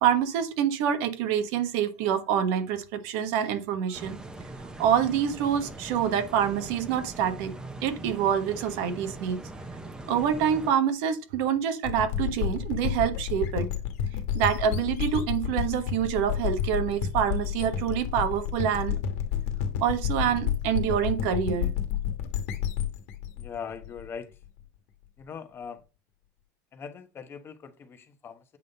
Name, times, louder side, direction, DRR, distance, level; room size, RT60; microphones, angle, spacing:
voice 1, 0.0-4.2 4.8-7.5 7.8-9.4 10.1-13.7 14.3-19.0 19.8-21.7, right 8 dB, 65° right, 1.2 m, -26 dB
sound 1, 3.9-10.7, right 2 dB, 10° right, 1.0 m, -41 dB
sound 2, 11.8-24.5, left 9 dB, 80° left, 1.4 m, -30 dB
voice 2, 23.3-24.3 25.2-25.8 26.7-28.6, left 6 dB, 25° left, 1.1 m, -41 dB
8.3 x 3.7 x 5.3 m
supercardioid pair, 140°, 9 cm